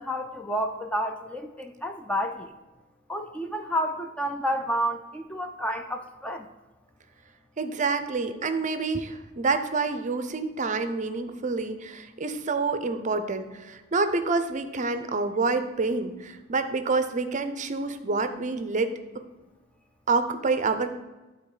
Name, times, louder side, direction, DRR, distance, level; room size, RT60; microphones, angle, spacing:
voice 1, 0.0-2.5 3.1-6.5, equal, 5° left, 5 dB, 0.4 m, -30 dB
voice 2, 7.6-18.9 20.1-20.9, right 4 dB, 40° right, 9 dB, 0.6 m, -27 dB
11.5 x 3.9 x 4.9 m, 1.2 s
head